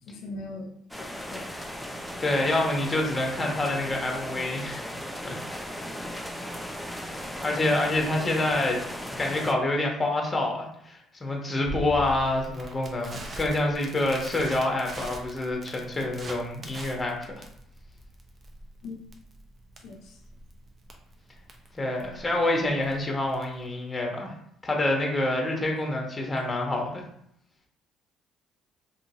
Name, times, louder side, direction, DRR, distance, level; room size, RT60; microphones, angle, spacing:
voice 1, 0.0-1.7 18.8-19.1 19.8-20.2, left 2 dB, 75° left, 2 dB, 0.4 m, -41 dB
sound 1, 0.9-9.5, equal, ahead, 0.5 m, -37 dB
voice 2, 2.2-4.9 5.2-5.6 7.4-8.8 9.2-17.4 21.8-24.3 24.6-27.0, left 2 dB, 20° left, 1 dB, 0.8 m, -27 dB
Crackle, 11.7-23.6, equal, 40° right, 0.6 m, -42 dB
2.8 x 2.7 x 2.7 m, 0.72 s
supercardioid pair, 85°, 0 cm